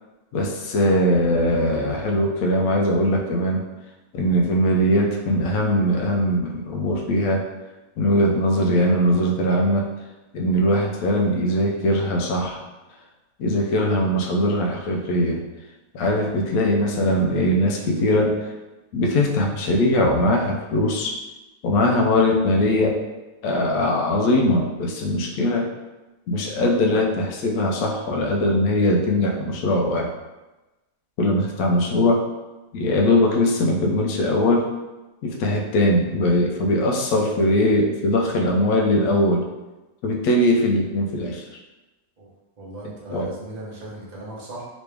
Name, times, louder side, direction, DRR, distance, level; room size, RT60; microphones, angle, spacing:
voice 1, 0.3-3.6 4.1-7.4 8.0-9.9 10.3-12.6 13.4-15.4 15.9-18.5 18.9-21.2 21.6-23.0 23.4-25.7 26.3-30.1 31.2-32.2 32.7-34.7 35.2-39.4 40.0-41.6 43.1-43.3, left 1 dB, 75° left, 0 dB, 1.0 m, -21 dB
voice 2, 42.6-44.7, right 1 dB, 35° right, -5 dB, 0.9 m, -37 dB
3.1 x 3.0 x 3.3 m, 1.1 s
omnidirectional pair, 1.5 m